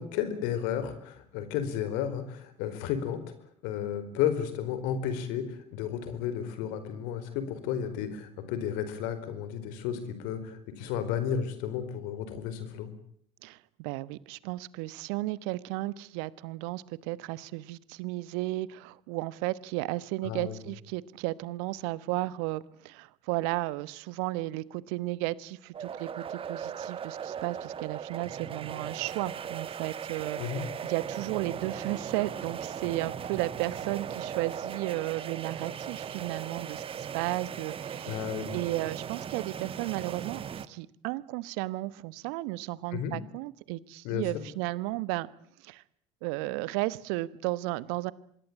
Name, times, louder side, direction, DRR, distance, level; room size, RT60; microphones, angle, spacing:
voice 1, 0.0-3.2 3.6-12.9 20.2-20.6 30.4-30.6 38.0-38.6 42.9-43.1 44.0-44.2, left 9 dB, 65° left, 12 dB, 4.6 m, -33 dB
voice 2, 13.4-38.2 38.5-40.4 40.7-45.3 45.6-45.8 46.2-48.1, right 19 dB, 65° right, 18 dB, 1.2 m, -34 dB
sound 1, 25.7-40.7, right 8 dB, 35° right, 1.5 m, -38 dB
25.5 x 21.5 x 8.8 m, 0.65 s
hypercardioid pair, 65°, 15 cm